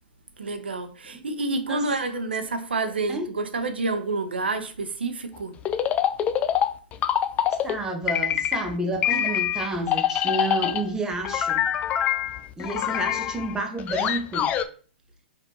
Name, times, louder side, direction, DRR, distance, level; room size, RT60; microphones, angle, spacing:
voice 1, 0.4-5.5, right 3 dB, 80° right, 0.6 m, -28 dB
sound 1, 5.7-7.8 8.1-8.7 9.0-10.9 11.2-14.7, left 10 dB, 25° left, 0.3 m, -25 dB
voice 2, 7.6-11.7 12.6-14.5, right 2 dB, 10° right, 0.8 m, -30 dB
5.2 x 2.5 x 2.9 m
hypercardioid pair, 115°, 6 cm